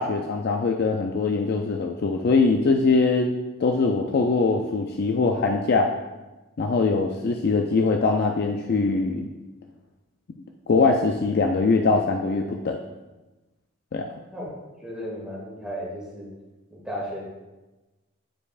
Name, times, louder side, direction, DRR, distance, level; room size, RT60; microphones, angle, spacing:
voice 1, 0.0-3.3 3.6-5.9 6.6-9.3 10.7-12.8 13.9-14.1, left 4 dB, 50° left, 3 dB, 0.4 m, -22 dB
voice 2, 14.3-16.3 16.7-17.2, equal, 5° right, -6 dB, 1.9 m, -35 dB
8.7 x 4.8 x 2.4 m, 1.1 s
head